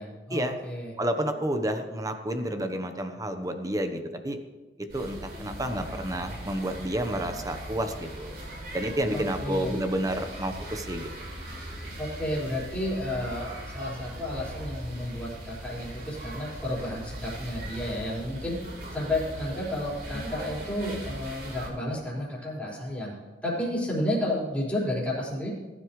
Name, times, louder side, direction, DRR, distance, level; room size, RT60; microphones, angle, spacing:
voice 1, 0.0-0.9 9.1-9.7 12.0-18.6 18.9-23.1 23.4-25.5, left 1 dB, 10° left, -7 dB, 5.1 m, -31 dB
voice 2, 1.0-4.4 4.9-8.4 8.7-11.1, right 1 dB, 20° right, 6 dB, 1.1 m, -30 dB
sound 1, 4.9-21.7, right 1 dB, 60° right, 4.6 m, -40 dB
20.0 x 11.5 x 3.3 m, 1.2 s
head